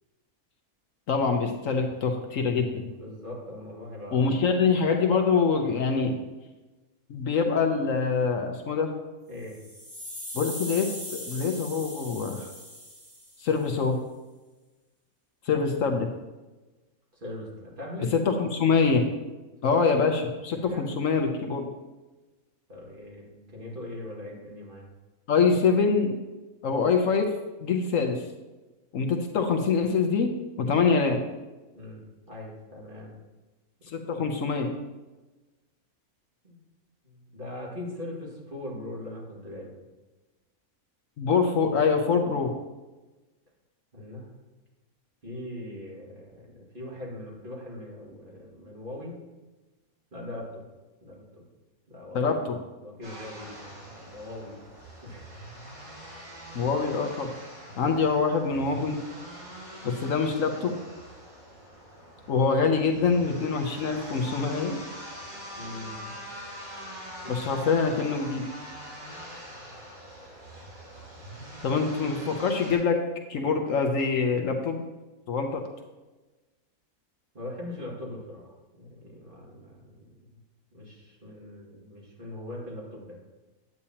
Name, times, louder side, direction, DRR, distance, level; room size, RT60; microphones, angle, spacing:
voice 1, 1.1-2.9 4.1-6.2 7.1-8.9 10.3-12.5 13.4-14.0 15.5-16.1 18.1-19.0 19.6-21.7 25.3-26.2 26.6-27.3 27.6-28.2 28.9-31.2 33.9-34.7 41.2-42.5 52.1-52.6 56.5-57.3 57.8-59.0 59.8-60.7 62.3-64.8 67.3-68.4 71.6-73.0 73.3-74.8 75.3-75.6, left 5 dB, 65° left, 4 dB, 1.1 m, -25 dB
voice 2, 2.9-4.3 9.3-9.6 17.1-18.1 19.6-19.7 20.5-20.8 22.7-24.9 31.7-33.2 36.4-36.6 37.0-39.7 43.9-44.3 45.2-49.1 50.1-50.7 51.0-51.4 51.9-52.3 52.8-54.7 55.0-55.7 57.6-58.0 65.6-66.2 67.2-67.3 77.3-80.4 80.7-83.2, left 1 dB, 35° right, -4 dB, 2.2 m, -41 dB
sound 1, 9.4-13.6, equal, 90° right, 3.6 m, -40 dB
sound 2, 53.0-72.8, equal, 70° right, 3.2 m, -43 dB
9.6 x 8.4 x 2.9 m, 1.2 s
omnidirectional pair, 1.5 m